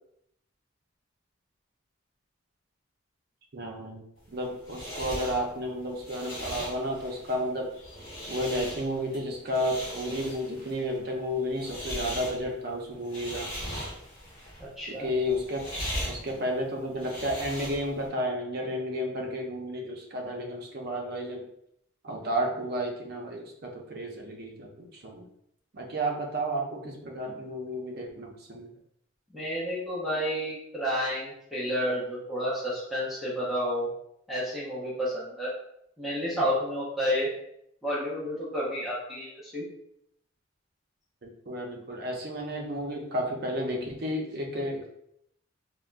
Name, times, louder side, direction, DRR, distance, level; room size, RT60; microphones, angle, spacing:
voice 1, 3.5-4.0 4.3-7.7 8.3-13.5 14.9-15.6 16.1-21.5 22.0-25.3 25.7-28.7 41.2-44.9, equal, 50° right, 1 dB, 0.5 m, -32 dB
sound 1, 4.2-18.1, equal, 30° left, 1.3 m, -39 dB
voice 2, 14.6-15.1 29.3-33.9 34.3-35.5 36.0-37.3 37.8-39.6, equal, ahead, -8 dB, 0.7 m, -30 dB
3.4 x 2.1 x 2.5 m, 0.74 s
head